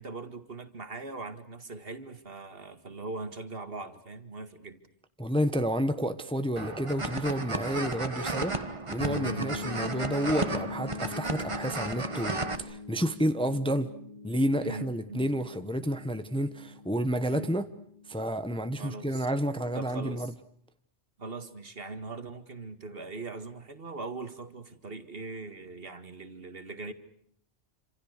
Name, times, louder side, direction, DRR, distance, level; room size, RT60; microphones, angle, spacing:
voice 1, 0.0-4.8 9.2-9.5 14.6-15.3 17.3-17.6 18.8-19.3 19.7-20.3 21.2-26.9, right 3 dB, 55° right, 2.1 m, -40 dB
voice 2, 5.2-8.6 8.9-13.9 14.2-17.7 18.1-20.3, equal, 5° left, 1.0 m, -30 dB
sound 1, 6.6-12.5, right 2 dB, 25° right, 1.4 m, -34 dB
sound 2, 9.0-18.6, left 4 dB, 40° left, 3.0 m, -42 dB
28.0 x 27.0 x 6.6 m
omnidirectional pair, 1.2 m